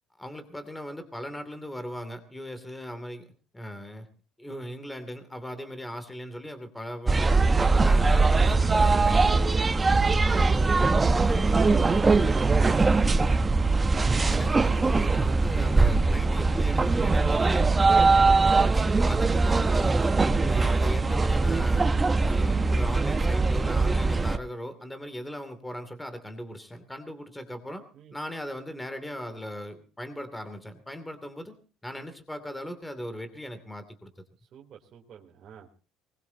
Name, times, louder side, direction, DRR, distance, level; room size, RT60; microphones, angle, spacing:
voice 1, 0.2-3.2 3.5-4.1 4.4-7.3 7.6-9.6 11.3-11.4 14.2-17.7 18.2-20.2 20.5-21.9 22.2-27.8 28.1-31.5 31.8-34.2, equal, 5° left, 10 dB, 2.6 m, -38 dB
sound 1, 7.1-24.4, right 3 dB, 20° right, 0.9 m, -22 dB
voice 2, 9.9-10.5 10.8-12.9 17.9-18.4 27.9-28.1 34.4-35.7, right 8 dB, 45° right, -1 dB, 3.3 m, -46 dB
23.0 x 20.5 x 2.8 m, 0.37 s
cardioid pair, 125°, 0 cm